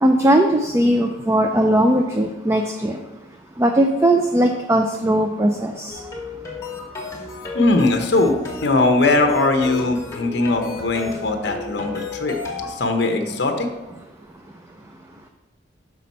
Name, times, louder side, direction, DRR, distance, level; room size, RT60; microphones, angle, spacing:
voice 1, 0.0-3.0 3.6-6.0, right 1 dB, 15° right, 4 dB, 0.3 m, -18 dB
sound 1, 5.9-12.8, left 4 dB, 15° left, 1.5 m, -33 dB
voice 2, 7.5-8.3 8.6-12.4 12.6-13.7, left 2 dB, 60° left, 5 dB, 0.8 m, -20 dB
6.2 x 5.8 x 4.1 m, 1.1 s
head